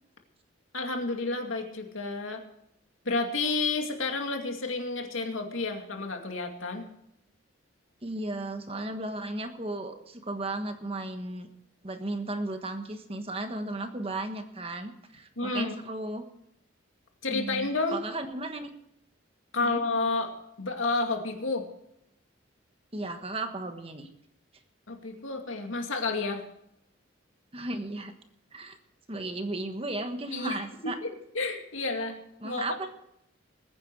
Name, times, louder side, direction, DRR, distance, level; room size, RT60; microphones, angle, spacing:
voice 1, 0.7-2.4 3.0-6.8 15.4-15.7 17.2-18.0 19.5-21.7 24.9-26.4 30.3-30.5 30.8-31.1 31.3-32.7, left 3 dB, 80° left, 4 dB, 2.3 m, -30 dB
voice 2, 8.0-11.5 11.8-16.2 17.3-18.7 19.6-19.8 22.9-24.1 27.5-28.1 28.5-28.8 29.1-31.0 32.4-32.9, right 2 dB, 30° right, 7 dB, 1.4 m, -35 dB
21.0 x 9.6 x 4.7 m, 0.78 s
head